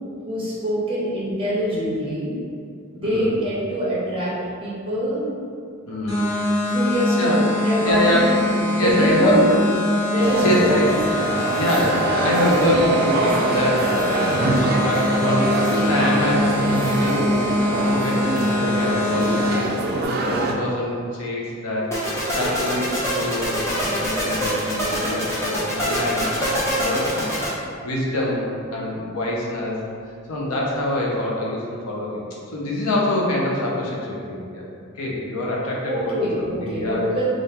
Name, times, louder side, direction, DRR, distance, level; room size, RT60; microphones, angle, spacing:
voice 1, 0.3-2.4 2.9-4.3 4.6-5.3 6.7-8.2 8.5-9.6 10.1-10.6 14.1-14.3 35.8-37.3, equal, 25° right, -7 dB, 0.9 m, -24 dB
voice 2, 3.0-3.4 5.9-6.3 7.2-7.4 7.8-8.3 8.8-9.4 10.4-10.9 11.6-15.5 15.9-29.7 30.3-32.2 32.5-34.7 34.9-37.0, left 1 dB, 90° left, -4 dB, 0.8 m, -25 dB
sound 1, 6.1-19.6, left 1 dB, 30° left, 1.1 m, -24 dB
sound 2, 10.2-20.5, right 2 dB, 45° right, 0.3 m, -24 dB
sound 3, 21.9-27.5, equal, 15° left, 0.7 m, -24 dB
3.6 x 2.5 x 4.3 m, 2.3 s
head